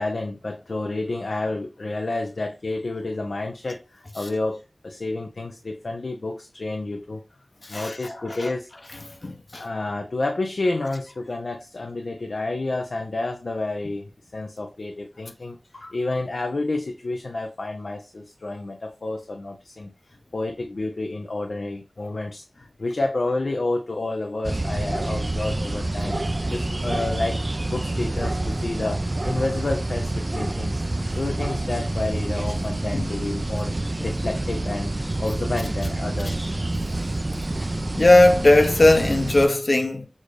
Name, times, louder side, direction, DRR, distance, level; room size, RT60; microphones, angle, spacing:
voice 1, 0.0-7.2 7.7-8.7 9.5-15.6 15.9-19.9 20.3-26.2 26.5-30.9 31.1-36.5, left 2 dB, 80° left, 0.5 m, -30 dB
voice 2, 7.7-8.1 8.4-8.5 9.2-9.6 15.8-15.9 32.9-33.1 37.3-37.4 37.9-40.1, left 2 dB, 60° left, 0.8 m, -18 dB
sound 1, 24.4-39.5, right 2 dB, 40° right, 0.4 m, -27 dB
6.2 x 2.5 x 3.2 m
wide cardioid pair, 65°, 0 cm